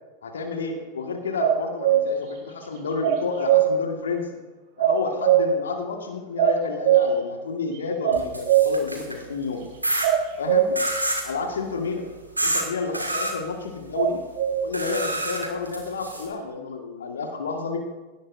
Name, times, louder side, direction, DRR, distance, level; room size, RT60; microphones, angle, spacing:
voice 1, 0.2-4.4 4.8-9.6 10.4-10.8 11.2-12.1 12.4-14.2 14.6-17.8, left 4 dB, 65° left, 3 dB, 1.6 m, -30 dB
sound 1, 1.4-2.1 3.0-3.7 4.8-5.6 6.4-7.1 8.0-8.7 10.0-10.7 13.9-14.6, right 11 dB, 50° right, 2.6 m, -19 dB
sound 2, 8.1-9.2 9.8-10.1 10.8-11.3 12.4-12.6 12.9-13.3 14.7-16.3, right 1 dB, 85° right, 2.1 m, -27 dB
18.0 x 10.5 x 2.6 m, 1.2 s
figure-of-eight pair, 90°, 0 cm